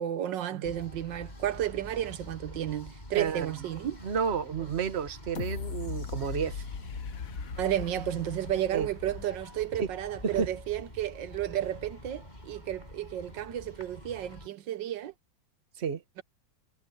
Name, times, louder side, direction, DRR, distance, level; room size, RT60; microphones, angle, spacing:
voice 1, 0.0-4.0 7.5-15.1, right 12 dB, 80° right, 1.6 m, -32 dB
sound 1, 0.6-14.5, left 1 dB, 25° left, 6.1 m, -47 dB
voice 2, 3.1-3.5 4.0-6.6 8.7-8.9 9.8-9.9 10.2-10.5 15.8-16.0, right 6 dB, 40° right, 1.3 m, -31 dB
sound 2, 5.3-10.2 10.7-10.8, left 6 dB, 55° left, 1.4 m, -39 dB
omnidirectional pair, 2.0 m